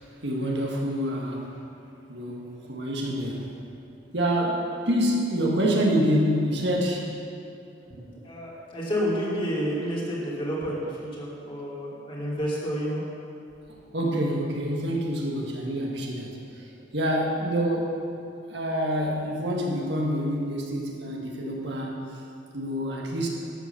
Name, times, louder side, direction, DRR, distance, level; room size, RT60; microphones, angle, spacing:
voice 1, 0.2-1.6 2.1-2.4 2.7-3.5 4.1-7.0 13.9-16.3 16.9-17.9 18.5-21.9 22.5-23.3, equal, 65° right, -1 dB, 1.9 m, -26 dB
voice 2, 7.9-13.0, equal, 30° left, -6 dB, 2.9 m, -30 dB
12.0 x 8.2 x 6.9 m, 2.5 s
head